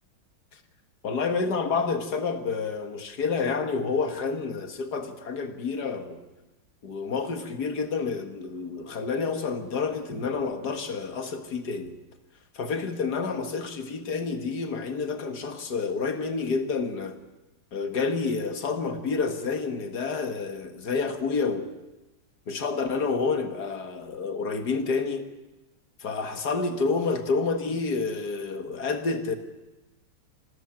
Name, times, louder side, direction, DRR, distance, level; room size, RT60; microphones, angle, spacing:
voice 1, 1.0-6.2 6.8-11.9 12.5-17.2 17.7-21.7 22.5-25.3 26.0-29.4, left 4 dB, 50° left, 2.1 m, -29 dB
25.5 x 13.5 x 9.0 m
omnidirectional pair, 2.3 m